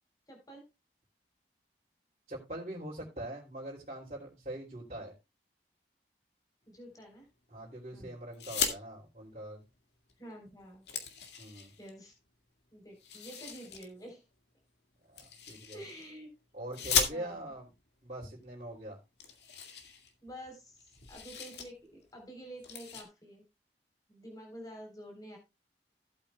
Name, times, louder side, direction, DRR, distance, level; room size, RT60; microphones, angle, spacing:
voice 1, 0.3-0.7 6.7-7.3 7.9-8.2 10.2-10.8 11.8-12.1 12.7-14.2 15.7-16.3 17.1-17.5 20.2-23.4 24.1-25.4, right 1 dB, 20° left, 1 dB, 3.9 m, -49 dB
voice 2, 2.3-5.1 7.5-9.6 11.4-11.7 15.1-15.8 16.5-17.7 18.0-19.0, right 1 dB, 35° right, -6 dB, 3.0 m, -43 dB
sound 1, 8.3-8.8 10.1-10.2 10.5-11.9 13.0-13.9 15.2-16.1 16.7-17.6 18.5-18.6 18.8-18.9 19.2-20.5 20.8-21.7 22.0-22.2 22.6-23.0, left 7 dB, 75° left, 2.1 m, -36 dB
16.5 x 8.6 x 2.3 m, 0.24 s
head